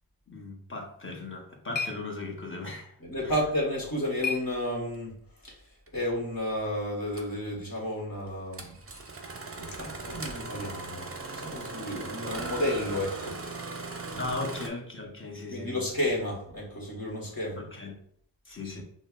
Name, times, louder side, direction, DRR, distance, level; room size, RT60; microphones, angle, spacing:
voice 1, 0.3-2.9 3.2-3.4 14.2-15.8 17.6-18.0 18.5-18.8, left 2 dB, 25° left, 0.9 m, -37 dB
sound 1, 1.0-5.2, left 5 dB, 65° left, 0.6 m, -39 dB
voice 2, 3.0-5.2 5.4-5.6 5.9-9.0 9.5-13.8 14.1-14.2 15.5-17.6 18.6-18.8, left 1 dB, 45° left, 1.4 m, -32 dB
Engine starting, 5.9-6.0 7.1-7.3 8.5-14.7, right 3 dB, 30° right, 0.5 m, -38 dB
5.5 x 2.1 x 2.4 m
wide cardioid pair, 50°, 47 cm